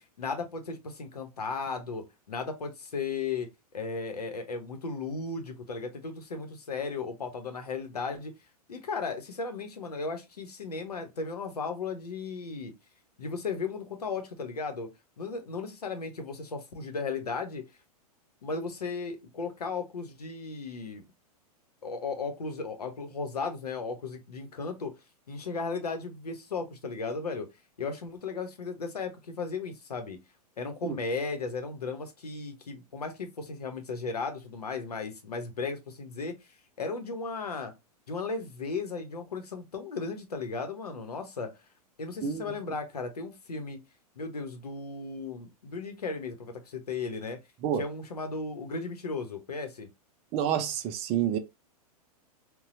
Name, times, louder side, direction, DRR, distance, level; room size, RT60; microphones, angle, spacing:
voice 1, 0.0-3.5 3.7-8.3 8.7-12.7 13.2-14.9 15.2-17.6 18.4-21.0 21.8-24.9 25.3-27.5 27.8-30.2 30.6-36.3 36.8-37.7 38.1-41.5 42.0-43.8 44.2-47.4 47.8-49.9, left 4 dB, 75° left, 0.8 m, -35 dB
voice 2, 42.2-42.5 47.6-47.8 50.3-51.4, right 9 dB, 30° right, 0.5 m, -28 dB
4.0 x 2.2 x 2.5 m
figure-of-eight pair, 100°, 20 cm